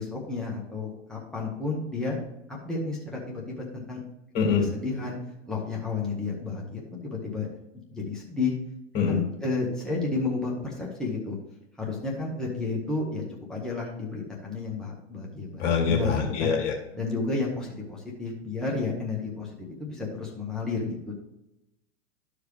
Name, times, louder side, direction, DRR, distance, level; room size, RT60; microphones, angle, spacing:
voice 1, 0.0-2.2 2.5-4.0 4.6-5.1 5.5-7.5 7.9-8.5 9.1-11.4 11.8-13.2 13.5-16.5 16.9-19.5 19.8-21.1, left 3 dB, ahead, -4 dB, 1.6 m, -31 dB
voice 2, 4.3-4.7 8.9-9.2 15.6-16.7, left 6 dB, 50° left, 1 dB, 2.5 m, -24 dB
12.5 x 5.0 x 3.4 m, 0.90 s
hypercardioid pair, 110°, 36 cm